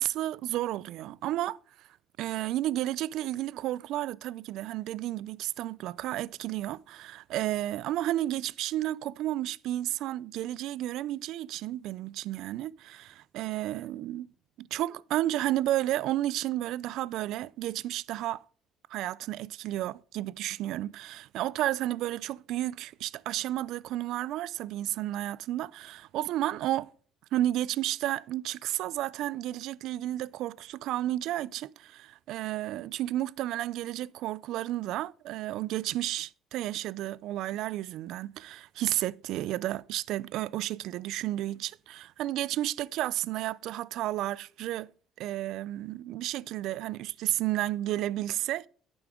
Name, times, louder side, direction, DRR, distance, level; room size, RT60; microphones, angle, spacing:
voice 1, 0.0-1.9 2.2-14.3 14.6-18.4 18.9-26.9 27.3-44.9 45.2-48.7, right 14 dB, 65° right, 0.3 m, -32 dB
9.8 x 6.9 x 3.6 m
cardioid pair, 160°, 0 cm